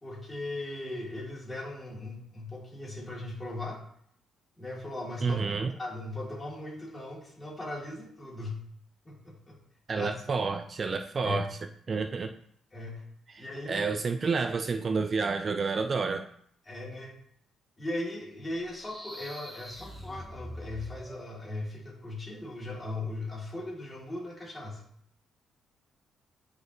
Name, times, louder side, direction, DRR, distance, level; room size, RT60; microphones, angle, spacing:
voice 1, 0.0-3.8 4.6-8.6 9.0-9.6 9.9-10.1 11.2-11.5 12.7-13.0 13.4-14.0 16.6-17.1 17.8-24.8, left 2 dB, 20° left, -4 dB, 3.1 m, -38 dB
voice 2, 5.2-5.7 9.9-11.5 11.9-12.3 13.3-16.3, right 4 dB, 40° right, 7 dB, 0.4 m, -29 dB
sound 1, 18.6-21.4, equal, 5° right, 1.1 m, -44 dB
10.0 x 4.8 x 3.2 m, 0.65 s
cardioid pair, 90°, 0 cm